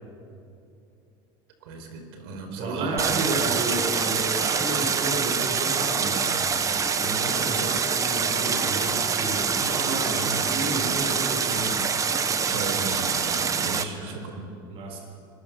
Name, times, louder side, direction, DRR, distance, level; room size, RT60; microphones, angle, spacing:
voice 1, 1.6-3.4 12.3-14.5, right 4 dB, 80° right, 5 dB, 4.8 m, -36 dB
voice 2, 2.6-6.5 7.0-11.9 13.6-14.2 14.7-15.0, right 2 dB, 50° right, 1 dB, 6.5 m, -32 dB
Stream, 3.0-13.8, right 6 dB, 25° right, 1.3 m, -25 dB
24.0 x 20.0 x 7.3 m, 2.7 s
supercardioid pair, 115°, 12 cm